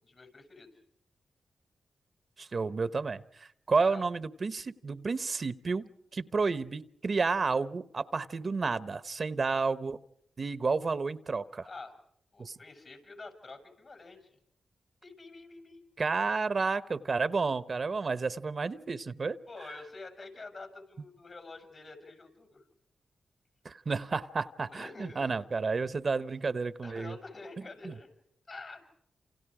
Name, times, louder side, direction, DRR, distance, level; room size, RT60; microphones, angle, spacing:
voice 1, 0.0-0.7 3.9-4.0 11.6-11.9 12.3-14.4 15.0-15.9 19.5-22.6 24.7-25.5 26.8-28.1 28.5-28.8, left 3 dB, 55° left, 5 dB, 6.9 m, -47 dB
voice 2, 2.4-10.0 10.4-11.7 12.4-12.6 16.0-19.4 23.6-27.2 27.8-27.9, right 4 dB, 55° right, 15 dB, 0.9 m, -31 dB
28.5 x 28.0 x 5.0 m, 0.72 s
supercardioid pair, 45°, 0 cm